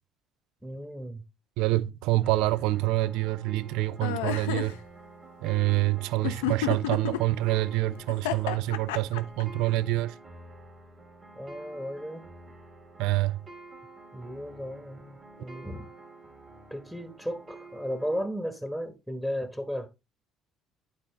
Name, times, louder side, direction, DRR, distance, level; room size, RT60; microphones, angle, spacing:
voice 1, 0.6-1.2 6.2-6.6 11.4-12.3 14.1-15.9 16.7-19.9, equal, 5° right, 1.3 m, -35 dB
voice 2, 1.6-4.8 5.4-10.1 13.0-13.4, right 17 dB, 60° right, 0.4 m, -26 dB
sound 1, 2.2-18.2, right 2 dB, 30° right, 1.9 m, -49 dB
sound 2, 4.0-4.7 6.2-7.2 8.1-9.4, left 10 dB, 70° left, 0.5 m, -30 dB
11.0 x 4.2 x 3.2 m
figure-of-eight pair, 55°, 0 cm